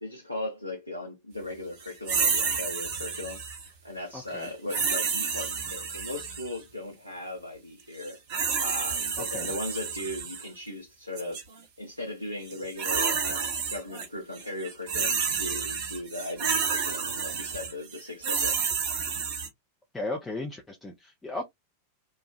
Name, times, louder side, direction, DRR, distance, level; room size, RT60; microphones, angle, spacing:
voice 1, 0.0-8.2 8.6-11.4 11.8-19.0, left 1 dB, 85° left, 0.7 m, -38 dB
sound 1, 2.1-3.7 4.7-6.6 8.0-10.4 11.2-11.4 12.5-14.1 14.4-19.5, right 6 dB, 50° right, 1.2 m, -30 dB
voice 2, 4.1-4.5 9.2-9.5 19.9-21.5, left 2 dB, 10° left, 0.6 m, -36 dB
3.0 x 2.3 x 2.3 m
figure-of-eight pair, 90°, 0 cm